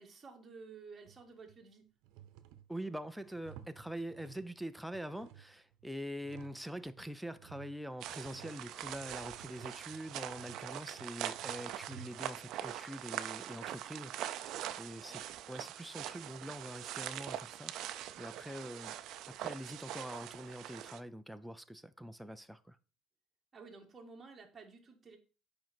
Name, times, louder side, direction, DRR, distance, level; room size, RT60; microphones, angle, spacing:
voice 1, 0.0-1.9 15.0-15.2 23.5-25.2, right 4 dB, 20° right, 1.7 m, -53 dB
sound 1, 1.1-1.6 2.0-4.6 4.9-6.7 7.0-12.5, right 11 dB, 85° right, 0.8 m, -56 dB
voice 2, 2.7-15.2 15.5-19.0 19.3-22.8, equal, ahead, 0.5 m, -44 dB
sound 2, 8.0-21.0, right 12 dB, 55° right, 0.5 m, -43 dB
9.1 x 5.2 x 4.4 m
cardioid pair, 165°, 0 cm